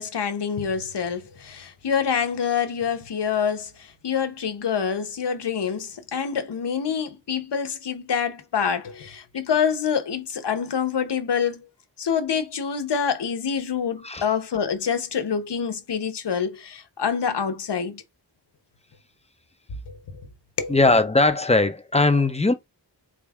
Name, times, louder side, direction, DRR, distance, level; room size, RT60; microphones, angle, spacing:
voice 1, 0.0-11.7 12.0-18.0 19.9-20.2 20.6-20.7, left 7 dB, 70° left, 0.8 m, -26 dB
voice 2, 20.7-22.5, left 2 dB, 15° left, 0.6 m, -19 dB
4.1 x 2.4 x 3.5 m
wide cardioid pair, 60°, 43 cm